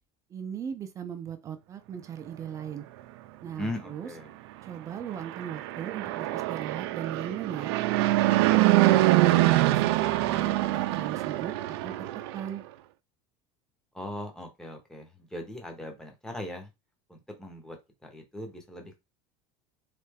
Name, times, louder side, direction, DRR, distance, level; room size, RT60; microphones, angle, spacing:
voice 1, 0.3-2.8 3.4-4.1 4.6-7.7 8.2-10.0 10.3-12.1 12.3-12.6, right 8 dB, 25° right, 0.5 m, -38 dB
voice 2, 3.6-4.4 13.9-16.7 17.1-17.8 18.0-19.0, left 1 dB, 5° left, 0.8 m, -39 dB
Fixed-wing aircraft airplane, 5.1-12.5, right 17 dB, 80° right, 0.5 m, -24 dB
3.8 x 3.2 x 3.4 m
cardioid pair, 165°, 13 cm